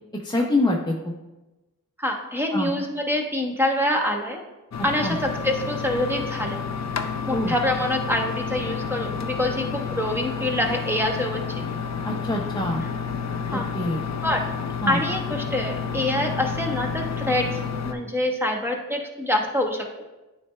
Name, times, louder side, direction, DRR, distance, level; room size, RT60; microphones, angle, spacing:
voice 1, 0.2-1.1 2.5-2.7 4.8-5.2 7.3-7.5 12.0-12.8 13.5-14.0 14.8-15.0, left 1 dB, 10° left, -1 dB, 0.7 m, -25 dB
voice 2, 2.0-4.4 4.8-6.6 7.3-11.7 13.5-13.7 14.2-14.5 14.9-19.9, left 1 dB, 5° right, 2 dB, 1.1 m, -26 dB
sound 1, 4.7-17.9, left 6 dB, 45° left, 0.6 m, -30 dB
9.1 x 3.3 x 3.3 m, 1.1 s
cardioid pair, 40°, 37 cm